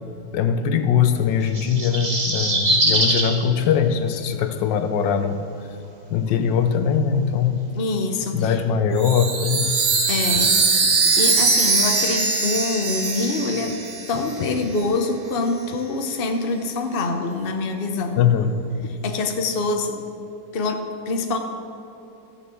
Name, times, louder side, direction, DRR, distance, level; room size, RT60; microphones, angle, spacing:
voice 1, 0.3-5.4 6.1-7.6 8.3-9.7 18.2-18.7, left 7 dB, 80° left, 9 dB, 1.5 m, -21 dB
sound 1, 1.4-3.3 4.7-4.8, right 1 dB, 25° right, 1.5 m, -21 dB
voice 2, 7.7-8.6 10.1-10.8 11.2-13.8 14.1-18.2 18.9-20.0 20.5-21.4, left 3 dB, 40° left, 5 dB, 0.9 m, -25 dB
Chime, 9.0-14.5, right 4 dB, 85° right, 2.2 m, -21 dB
14.0 x 6.7 x 7.7 m, 2.9 s
omnidirectional pair, 2.0 m